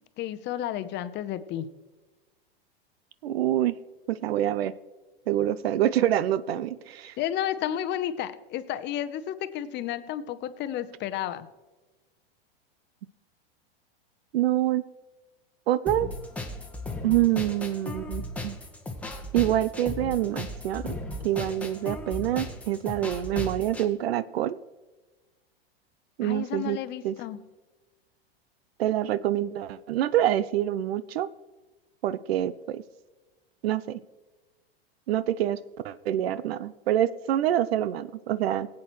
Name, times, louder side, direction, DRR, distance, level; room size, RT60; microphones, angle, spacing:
voice 1, 0.2-1.7 7.2-11.5 26.2-27.4, left 11 dB, 35° left, 12 dB, 0.8 m, -32 dB
voice 2, 3.2-3.8 4.1-4.7 5.3-7.2 14.3-14.9 15.7-16.1 17.0-18.5 19.3-21.0 21.2-24.6 26.2-26.8 27.0-27.1 28.8-31.3 32.0-32.8 33.6-34.0 35.1-35.6 35.8-38.7, right 12 dB, 80° right, 17 dB, 0.5 m, -26 dB
sound 1, 15.9-23.9, left 2 dB, 5° left, 1.2 m, -36 dB
18.5 x 8.5 x 3.1 m, 1.2 s
hypercardioid pair, 115°, 30 cm